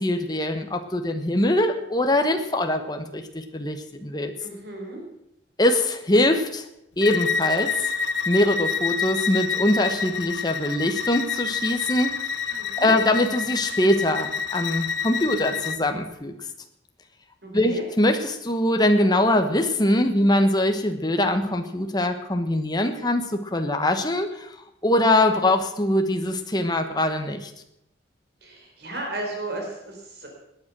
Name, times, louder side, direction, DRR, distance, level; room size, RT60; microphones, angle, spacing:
voice 1, 0.0-4.3 5.6-6.6 7.0-7.9 8.3-12.2 12.5-16.3 17.5-24.5 24.8-27.5, left 1 dB, 20° left, 6 dB, 1.2 m, -23 dB
voice 2, 4.4-5.0 12.6-12.9 17.4-17.8 28.4-30.3, right 2 dB, 55° right, 1 dB, 4.2 m, -34 dB
Bowed string instrument, 7.0-15.8, left 6 dB, 65° left, 0.8 m, -28 dB
19.0 x 9.4 x 6.1 m, 0.82 s
head